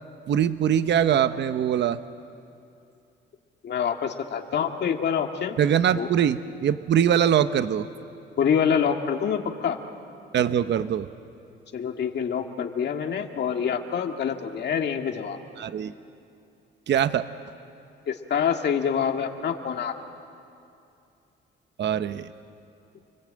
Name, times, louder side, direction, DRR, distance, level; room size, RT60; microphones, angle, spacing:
voice 1, 0.3-2.0 5.6-7.9 10.3-11.1 15.6-15.9 16.9-17.2 21.8-22.3, right 9 dB, 60° right, 11 dB, 0.9 m, -22 dB
voice 2, 3.6-5.6 5.9-6.1 8.4-9.8 11.7-15.4 18.1-19.9, left 7 dB, 60° left, 4 dB, 2.1 m, -26 dB
29.5 x 21.0 x 8.8 m, 2.6 s
cardioid pair, 90°, 20 cm